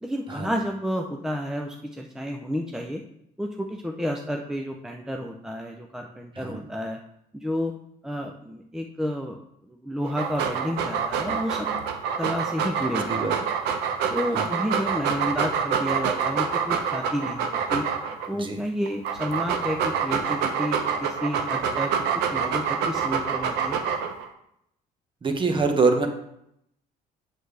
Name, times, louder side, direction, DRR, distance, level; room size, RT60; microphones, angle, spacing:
voice 1, 0.0-3.0 3.4-7.0 7.3-7.7 8.0-9.4 9.6-11.8 12.2-13.1 14.1-17.9 18.3-21.9 22.3-23.8, equal, 5° right, 2 dB, 0.5 m, -31 dB
Dog, 10.1-18.3 18.9-24.3, right 6 dB, 85° right, 0.8 m, -26 dB
voice 2, 25.2-26.1, right 4 dB, 30° right, 5 dB, 1.2 m, -24 dB
7.7 x 6.5 x 3.3 m, 0.77 s
cardioid pair, 110°, 17 cm